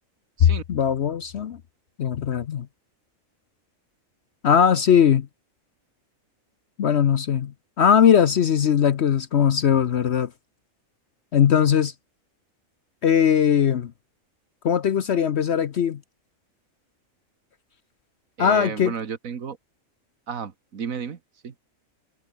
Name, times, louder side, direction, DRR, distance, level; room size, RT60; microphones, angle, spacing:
voice 1, 0.4-1.6 2.0-2.7 4.4-5.3 6.8-7.5 7.8-10.3 11.3-11.9 13.0-13.9 14.6-16.0 18.4-18.9, left 8 dB, 60° left, 1.0 m, -19 dB
voice 2, 18.4-19.6 20.3-21.5, right 7 dB, 90° right, 1.9 m, -33 dB
omnidirectional pair, 1.4 m